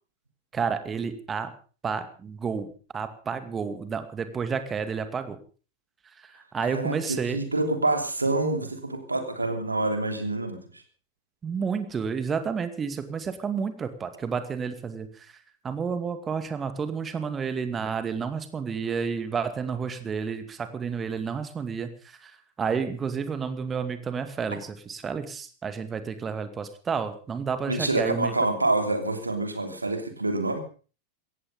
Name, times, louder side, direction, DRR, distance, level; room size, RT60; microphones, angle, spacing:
voice 1, 0.5-1.5 1.8-5.4 6.2-7.4 11.4-15.3 15.6-22.3 22.6-28.3, right 6 dB, 20° right, 10 dB, 2.3 m, -30 dB
voice 2, 6.6-10.8 27.7-30.6, right 2 dB, 80° right, 7 dB, 3.0 m, -27 dB
17.5 x 15.0 x 5.4 m, 0.39 s
figure-of-eight pair, 90°, 0 cm